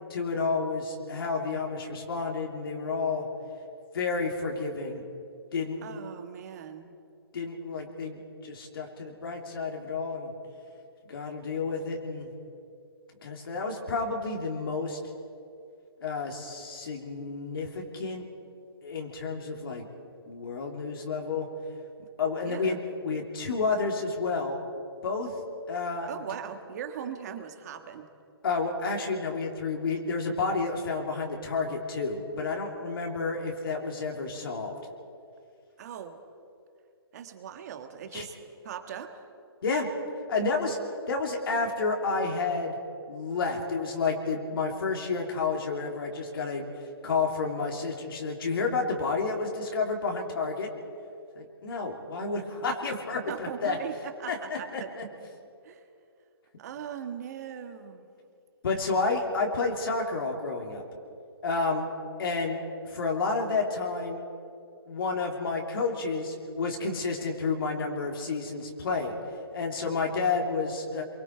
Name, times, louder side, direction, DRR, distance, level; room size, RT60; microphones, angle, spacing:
voice 1, 0.1-3.3 3.9-5.0 5.5-5.8 7.3-8.2 8.4-10.3 11.1-12.3 13.2-15.0 16.0-18.2 18.8-19.9 20.3-21.5 22.2-24.6 25.0-25.3 25.7-26.1 28.4-34.7 38.1-38.2 39.6-39.9 40.3-40.8 41.1-42.8 43.1-50.7 51.3-53.8 54.3-55.1 58.6-60.8 61.4-61.9 62.2-62.6 62.8-64.2 64.9-69.2 69.5-71.0, left 4 dB, 60° left, 1 dB, 2.9 m, -30 dB
voice 2, 5.8-6.9 22.4-22.8 26.1-28.1 35.8-36.2 37.1-38.4 38.6-39.2 53.3-54.9 55.6-55.8 56.6-58.1, right 8 dB, 40° right, 6 dB, 1.7 m, -39 dB
28.5 x 23.5 x 4.6 m, 2.5 s
hypercardioid pair, 160°, 13 cm